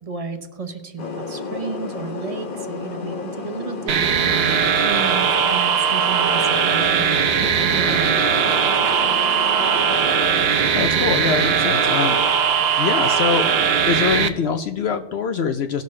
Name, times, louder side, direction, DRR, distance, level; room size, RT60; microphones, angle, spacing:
voice 1, 0.0-8.2, right 5 dB, 35° right, 7 dB, 0.8 m, -33 dB
sound 1, 1.0-12.4, left 4 dB, 50° left, 1.0 m, -32 dB
sound 2, 3.9-14.3, right 7 dB, 60° right, 0.9 m, -19 dB
voice 2, 10.6-12.5 12.8-13.5 13.8-15.8, left 6 dB, 65° left, 7 dB, 0.8 m, -24 dB
18.0 x 6.6 x 3.2 m, 1.2 s
omnidirectional pair, 1.3 m